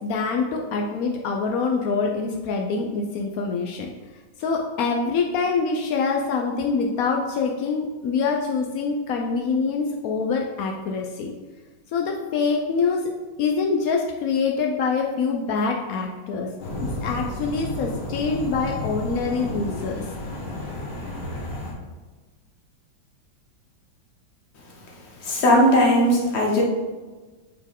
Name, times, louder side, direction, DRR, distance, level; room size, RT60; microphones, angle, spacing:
voice 1, 0.0-3.9 4.4-11.3 11.9-13.0 13.4-16.5 17.0-20.0, left 4 dB, 75° left, 1 dB, 0.8 m, -25 dB
sound 1, 16.6-21.7, left 1 dB, 55° left, 2.1 m, -32 dB
voice 2, 25.2-26.6, equal, 40° left, -1 dB, 1.2 m, -18 dB
8.1 x 4.4 x 3.6 m, 1.3 s
omnidirectional pair, 2.2 m